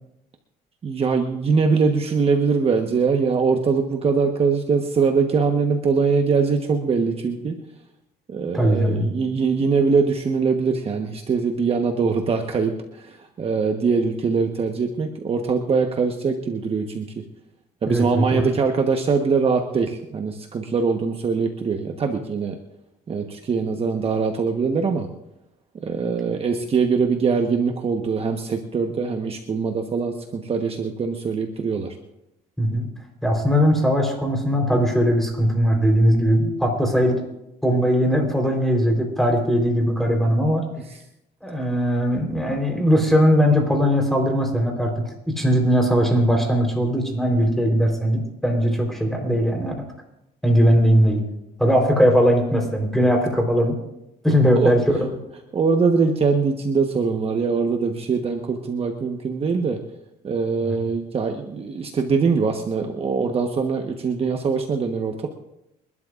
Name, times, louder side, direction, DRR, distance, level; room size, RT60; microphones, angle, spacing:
voice 1, 0.8-7.6 8.3-17.1 17.8-22.6 23.1-25.1 25.8-32.0 54.3-54.7 55.5-59.8 60.2-65.3, right 5 dB, 35° right, 3 dB, 1.2 m, -22 dB
voice 2, 8.5-9.1 17.9-18.4 32.6-32.9 33.2-37.2 37.6-40.7 41.4-49.7 50.4-51.2 51.6-53.8 54.2-55.0 60.6-60.8, equal, ahead, 2 dB, 3.8 m, -19 dB
28.5 x 12.0 x 2.5 m, 0.87 s
cardioid pair, 110°, 17 cm